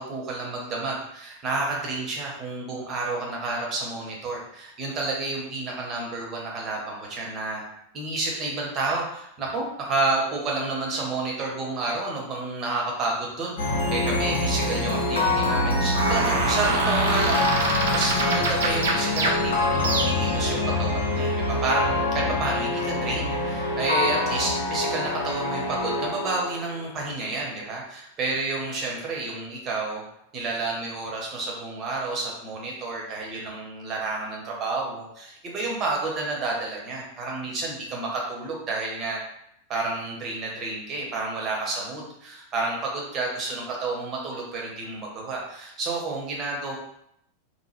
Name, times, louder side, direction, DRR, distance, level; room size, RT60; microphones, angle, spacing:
voice 1, 0.0-7.6 7.9-13.6 13.9-30.0 30.3-39.2 39.7-46.8, right 3 dB, 30° right, -2 dB, 1.0 m, -30 dB
sound 1, 13.6-26.8, left 2 dB, 65° left, 0.7 m, -25 dB
sound 2, 15.9-20.4, right 3 dB, 60° right, 0.6 m, -26 dB
3.7 x 2.1 x 3.1 m, 0.75 s
figure-of-eight pair, 90°, 0 cm